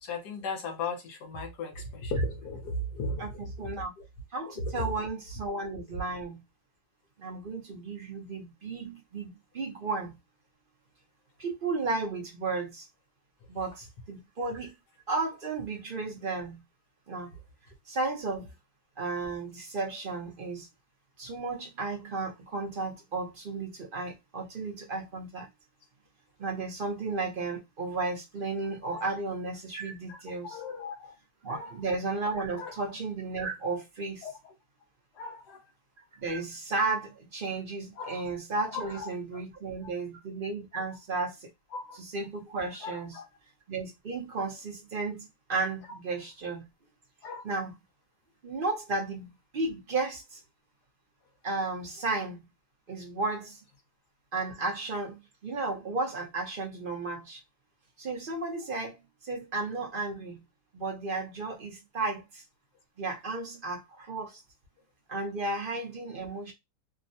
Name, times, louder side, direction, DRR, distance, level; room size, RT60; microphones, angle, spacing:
voice 1, 0.0-4.0 4.6-4.9 28.8-29.1 30.1-30.2 30.4-31.1 31.5-31.7 32.6-32.7 34.2-34.3 35.1-35.6 38.0-38.2 38.7-39.1 40.7-40.8 41.7-42.0 42.8-43.3 45.9-46.0 47.2-47.4, left 2 dB, 75° left, 1.4 m, -36 dB
voice 2, 3.2-3.9 4.3-6.4 7.2-10.2 11.4-12.9 13.5-14.7 15.1-16.6 17.1-17.3 17.9-18.5 19.0-20.7 21.2-25.5 26.4-30.6 31.4-34.3 36.2-41.5 41.9-43.2 43.7-46.6 47.4-47.7 48.4-50.4 51.4-52.4 52.9-53.6 54.3-57.4 58.0-60.4 60.7-62.4 63.0-64.4 65.1-66.5, right 3 dB, 45° right, 0.7 m, -34 dB
3.5 x 2.1 x 2.6 m
omnidirectional pair, 1.8 m